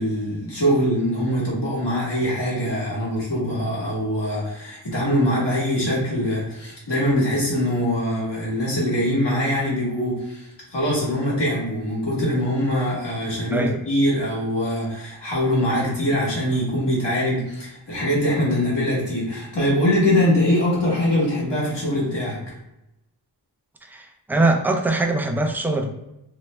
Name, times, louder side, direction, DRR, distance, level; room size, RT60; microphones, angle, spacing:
voice 1, 0.0-22.4, equal, 75° left, -6 dB, 1.4 m, -23 dB
voice 2, 23.8-25.9, right 2 dB, 5° right, 3 dB, 0.3 m, -22 dB
3.0 x 2.0 x 3.2 m, 0.89 s
wide cardioid pair, 60°, 43 cm